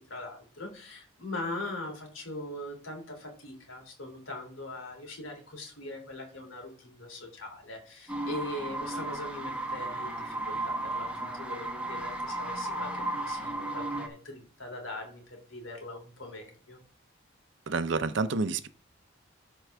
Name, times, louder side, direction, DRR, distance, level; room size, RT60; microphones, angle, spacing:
voice 1, 0.1-16.8, left 1 dB, 90° left, 3.0 m, -41 dB
sound 1, 8.1-14.1, right 1 dB, 5° right, 0.9 m, -34 dB
voice 2, 17.7-18.7, right 4 dB, 65° right, 0.5 m, -29 dB
13.5 x 4.6 x 3.4 m
head